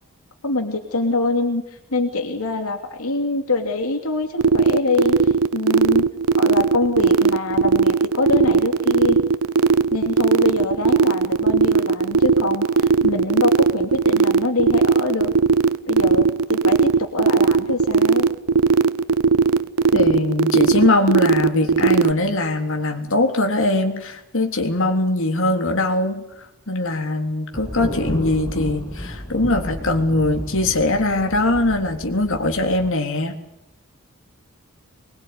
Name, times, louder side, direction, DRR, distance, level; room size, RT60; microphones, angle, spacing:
voice 1, 0.4-1.6 1.9-6.1 6.4-9.2 9.9-15.3 15.9-18.3, left 3 dB, 90° left, 5 dB, 2.8 m, -24 dB
sound 1, 4.4-22.1, right 5 dB, 80° right, 0.9 m, -16 dB
voice 2, 19.9-26.3 26.7-33.3, left 2 dB, 65° left, 4 dB, 3.6 m, -21 dB
Thunder, 27.5-32.9, left 1 dB, 20° left, 7.0 m, -32 dB
25.0 x 22.0 x 9.7 m, 0.84 s
head